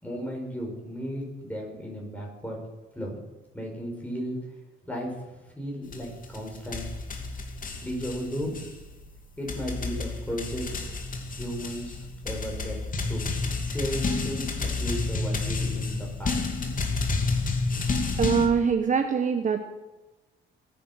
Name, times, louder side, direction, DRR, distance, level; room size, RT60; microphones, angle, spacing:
voice 1, 0.0-2.6 2.9-3.2 3.5-4.4 4.9-5.2 5.6-6.9 7.8-8.5 9.4-10.7 11.3-12.8 13.1-13.2 13.6-16.4, equal, 5° left, -1 dB, 6.9 m, -34 dB
sound 1, 5.9-18.5, left 3 dB, 45° left, 2.7 m, -30 dB
voice 2, 18.2-19.6, right 6 dB, 40° right, 6 dB, 1.2 m, -23 dB
22.0 x 10.0 x 6.6 m, 1.1 s
cardioid pair, 90°, 20 cm